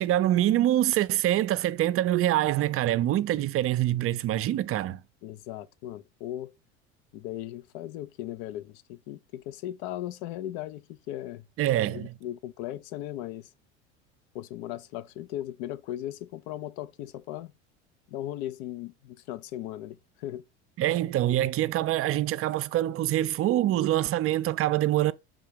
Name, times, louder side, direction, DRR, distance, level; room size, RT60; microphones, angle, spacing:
voice 1, 0.0-5.0 11.6-12.1 20.8-25.1, right 13 dB, 40° right, 0.6 m, -25 dB
voice 2, 5.2-6.5 7.1-11.5 11.9-13.5 14.3-17.5 18.1-20.4, left 13 dB, 70° left, 0.7 m, -37 dB
5.6 x 3.8 x 5.1 m
hypercardioid pair, 90°, 34 cm